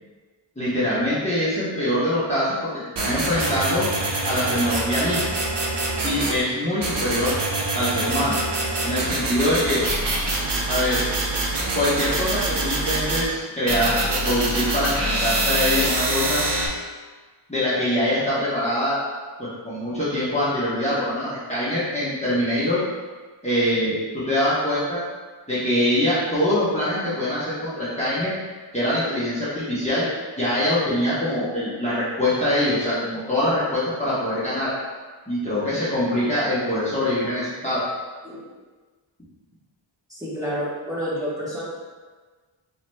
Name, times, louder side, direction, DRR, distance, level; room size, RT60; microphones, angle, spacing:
voice 1, 0.6-2.7 3.0-3.9 4.2-5.3 6.0-7.3 7.7-8.3 8.8-9.8 10.7-11.0 11.7-14.0 14.2-16.4 17.5-19.0 19.4-22.8 23.4-25.0 25.5-28.3 28.7-30.1 30.4-34.7 35.3-37.8, left 1 dB, 15° left, -11 dB, 1.0 m, -23 dB
sound 1, 3.0-6.4 6.8-13.3 13.7-16.7, right 2 dB, 55° right, 0.7 m, -25 dB
voice 2, 40.1-41.6, equal, 5° right, -9 dB, 1.1 m, -29 dB
4.6 x 3.1 x 2.2 m, 1.4 s
wide cardioid pair, 95°, 50 cm